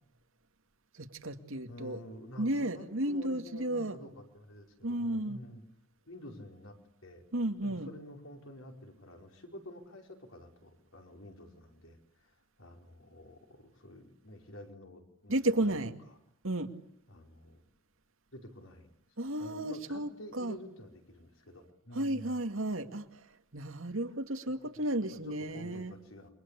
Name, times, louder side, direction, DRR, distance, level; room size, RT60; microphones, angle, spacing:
voice 1, 0.9-2.0 2.4-4.0 4.8-5.4 7.3-7.9 15.3-15.9 16.4-16.7 19.2-20.6 21.9-23.2 23.5-25.9, right 1 dB, 75° right, 7 dB, 2.3 m, -33 dB
voice 2, 1.7-5.6 6.1-7.2 7.6-15.8 17.1-17.6 18.3-18.9 19.4-22.4 24.7-24.9 25.1-26.3, left 1 dB, 70° left, 3 dB, 5.0 m, -50 dB
29.0 x 24.0 x 8.4 m, 0.75 s
head